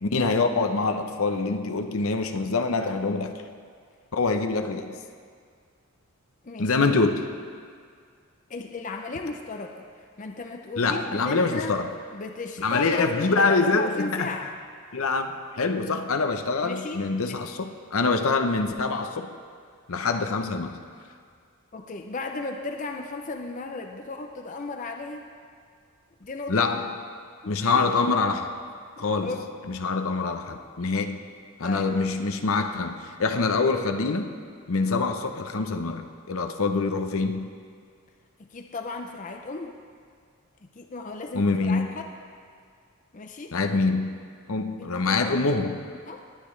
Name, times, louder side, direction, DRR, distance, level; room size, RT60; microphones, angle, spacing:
voice 1, 0.0-3.4 4.1-5.0 6.6-7.3 10.8-11.9 12.6-14.3 14.9-19.3 19.9-20.8 26.5-26.9 27.5-28.6 29.0-29.3 29.7-31.2 31.6-34.3 34.7-37.5 41.3-41.9 43.5-44.2 44.5-45.8, left 3 dB, 70° left, 6 dB, 0.8 m, -25 dB
voice 2, 6.4-6.7 8.5-9.9 10.2-11.8 12.1-14.5 16.6-17.0 21.7-25.3 26.2-26.8 27.4-27.8 29.0-29.4 31.6-31.9 34.8-34.9 38.4-39.8 40.7-42.1 43.1-43.6 44.8-45.4 46.1-46.2, left 3 dB, 35° left, 3 dB, 0.5 m, -35 dB
20.0 x 9.2 x 3.2 m, 2.1 s
head